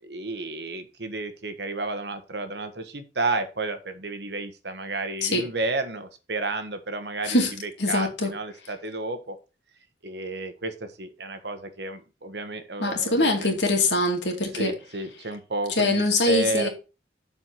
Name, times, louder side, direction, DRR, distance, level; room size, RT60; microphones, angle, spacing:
voice 1, 0.0-9.4 10.0-13.6 14.5-16.7, right 2 dB, 65° right, 1.2 m, -32 dB
voice 2, 7.8-8.3 12.8-14.8 15.8-16.7, left 2 dB, 75° left, 2.4 m, -23 dB
7.2 x 4.5 x 6.2 m
head